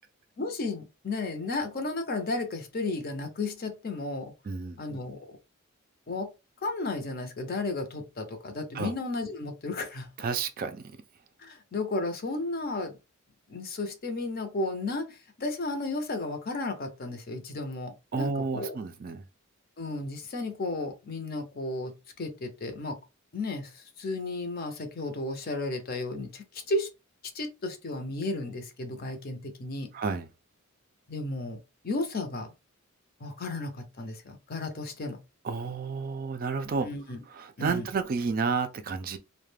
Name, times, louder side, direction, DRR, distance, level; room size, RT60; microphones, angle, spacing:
voice 1, 0.4-4.3 4.8-5.2 6.1-6.3 6.6-10.1 11.4-13.0 13.5-18.8 19.8-23.0 23.3-26.9 27.3-29.9 31.1-32.5 33.2-35.2 36.8-37.2 37.6-37.9, left 2 dB, 45° left, 0.6 m, -33 dB
voice 2, 4.5-4.8 8.7-8.9 10.2-11.0 18.1-19.2 29.9-30.3 35.4-36.9 37.3-39.2, right 5 dB, 40° right, 0.3 m, -31 dB
2.3 x 2.1 x 3.2 m
head